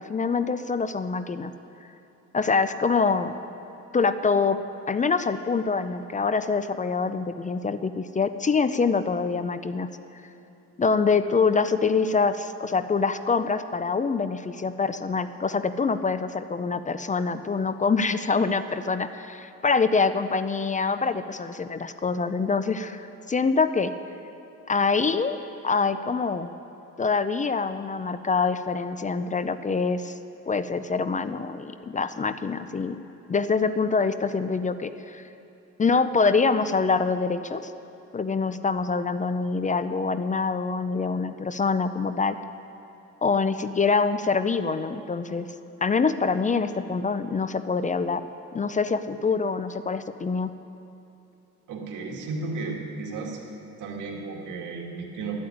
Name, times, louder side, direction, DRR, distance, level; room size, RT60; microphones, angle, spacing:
voice 1, 0.0-1.5 2.3-3.3 3.9-4.6 4.9-9.9 10.8-23.9 24.7-25.4 25.6-26.5 27.0-30.2 30.5-33.0 33.3-35.2 35.8-37.7 38.1-42.4 43.2-45.5 45.8-48.2 48.5-50.5, left 4 dB, 25° left, 12 dB, 0.5 m, -25 dB
voice 2, 51.7-53.4 53.8-55.4, right 3 dB, 85° right, 0 dB, 2.1 m, -34 dB
12.0 x 8.7 x 9.2 m, 2.8 s
cardioid pair, 90°, 30 cm